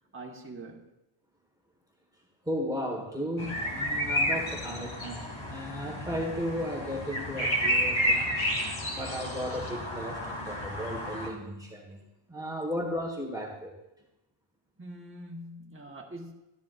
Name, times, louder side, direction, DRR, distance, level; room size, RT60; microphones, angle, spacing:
voice 1, 0.1-0.9 14.8-16.3, right 1 dB, 25° right, 0 dB, 1.3 m, -43 dB
voice 2, 2.4-8.4 8.9-13.8, equal, 10° right, -1 dB, 1.5 m, -35 dB
sound 1, 3.4-11.3, equal, 70° left, 2.3 m, -31 dB
13.5 x 10.5 x 2.5 m, 0.92 s
wide cardioid pair, 125°, 48 cm